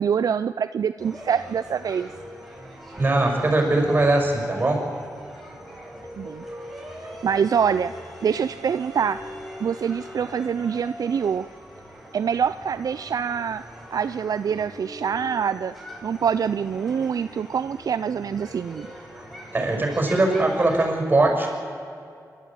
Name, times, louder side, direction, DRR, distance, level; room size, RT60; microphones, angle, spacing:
voice 1, 0.0-2.1 6.2-6.4 7.2-9.2 9.6-11.5 12.1-13.6 13.9-15.7 16.0-18.9, right 7 dB, 65° right, 12 dB, 0.4 m, -25 dB
sound 1, 1.0-20.9, equal, ahead, 4.7 m, -41 dB
voice 2, 3.0-4.9 19.5-21.7, right 2 dB, 25° right, 2 dB, 6.0 m, -21 dB
27.0 x 12.5 x 8.8 m, 2.4 s
wide cardioid pair, 105°, 7 cm